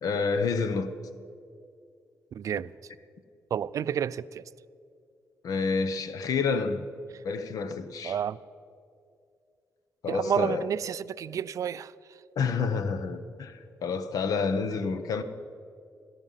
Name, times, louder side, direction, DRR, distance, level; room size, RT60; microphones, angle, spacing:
voice 1, 0.0-0.9 5.4-6.9 7.2-8.2 10.0-10.7 12.4-15.2, left 5 dB, 70° left, 1.0 m, -29 dB
voice 2, 2.3-2.7 3.5-4.4 8.0-8.4 10.1-11.9, right 8 dB, 60° right, 0.4 m, -30 dB
17.5 x 13.0 x 5.6 m
cardioid pair, 115°, 6 cm